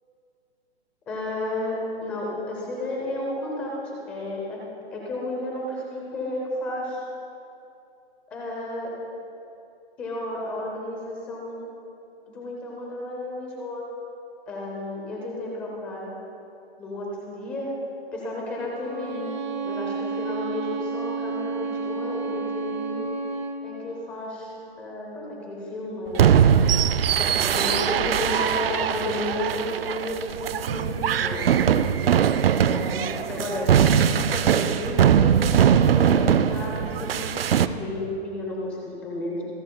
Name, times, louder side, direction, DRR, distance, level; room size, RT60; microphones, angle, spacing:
voice 1, 1.1-4.6 4.9-7.0 8.3-8.9 10.0-11.6 12.3-13.8 14.5-16.1 16.8-17.8 18.1-19.3 19.6-23.1 23.6-26.5 27.1-31.5 32.6-33.7 34.0-35.4 35.7-39.4, left 1 dB, 5° left, -3 dB, 0.6 m, -32 dB
Bowed string instrument, 18.8-23.7, right 4 dB, 45° right, 1.0 m, -31 dB
sound 1, 26.1-37.7, right 8 dB, 65° right, 0.5 m, -21 dB
27.0 x 10.5 x 2.2 m, 2.7 s
hypercardioid pair, 170°, 32 cm